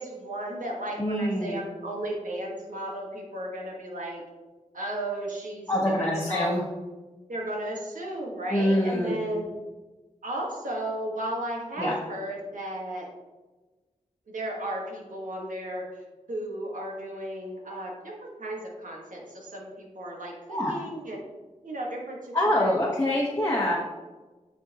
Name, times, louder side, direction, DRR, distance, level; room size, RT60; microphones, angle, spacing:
voice 1, 0.0-4.2 4.7-6.5 7.3-9.5 10.2-13.1 14.3-16.0 16.3-21.2 21.6-22.9, right 1 dB, 85° right, -2 dB, 1.6 m, -34 dB
voice 2, 1.0-1.6 5.7-6.6 8.5-9.1 11.8-11.9 20.5-20.8 22.3-23.7, left 1 dB, 20° left, -4 dB, 1.2 m, -25 dB
9.8 x 4.4 x 3.0 m, 1.2 s
wide cardioid pair, 65°, 13 cm